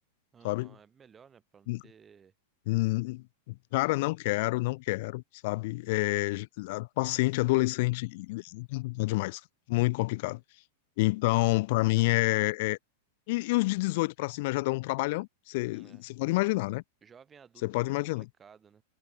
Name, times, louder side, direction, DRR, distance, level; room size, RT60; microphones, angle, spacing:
voice 1, 0.3-2.3 15.7-16.0 17.0-18.8, right 7 dB, 20° right, 5.2 m, -57 dB
voice 2, 2.7-9.4 9.7-10.4 11.0-12.8 13.3-16.8 17.6-18.2, left 22 dB, 60° left, 0.5 m, -28 dB
hypercardioid pair, 130°, 0 cm